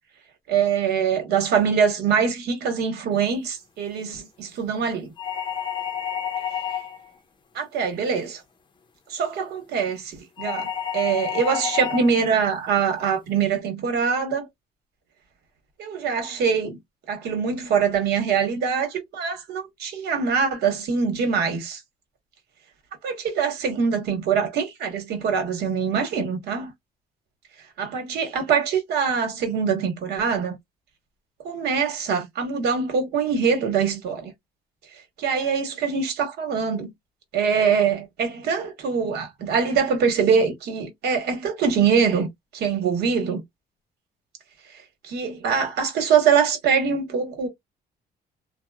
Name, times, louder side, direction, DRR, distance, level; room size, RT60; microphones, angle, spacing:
voice 1, 0.5-5.1 7.5-8.4 9.1-14.5 15.8-16.8 17.1-21.8 23.0-26.7 27.8-30.6 31.4-34.3 35.2-36.9 37.3-43.4 45.0-47.5, right 6 dB, 70° right, 1.2 m, -23 dB
sound 1, 5.2-7.1 10.4-12.2, left 8 dB, 30° left, 0.6 m, -29 dB
2.8 x 2.1 x 2.2 m
cardioid pair, 110°, 17 cm